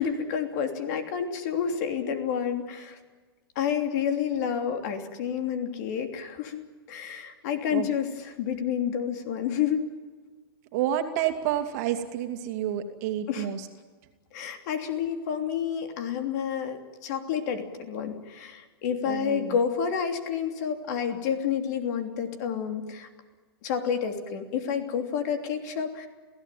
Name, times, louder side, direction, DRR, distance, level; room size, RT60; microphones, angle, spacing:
voice 1, 0.0-3.0 3.5-9.9 13.3-13.5 14.3-23.1 23.6-26.1, left 7 dB, 45° left, 5 dB, 3.1 m, -29 dB
voice 2, 10.7-13.7 19.1-19.5, right 10 dB, 40° right, 6 dB, 2.6 m, -29 dB
28.0 x 17.0 x 9.3 m, 1.4 s
hypercardioid pair, 160°, 13 cm